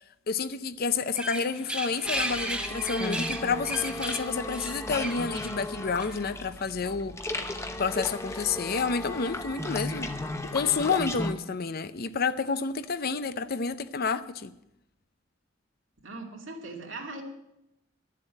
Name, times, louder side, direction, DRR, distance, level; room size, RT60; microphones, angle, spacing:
voice 1, 0.3-7.2 7.8-10.1 10.5-14.5, left 5 dB, 50° left, 0.6 m, -29 dB
sound 1, 1.0-6.3, right 1 dB, 5° right, 1.5 m, -35 dB
sound 2, 2.0-11.3, left 1 dB, 15° left, 0.9 m, -35 dB
voice 2, 16.0-17.2, right 2 dB, 75° right, 2.5 m, -39 dB
12.0 x 7.6 x 8.9 m
head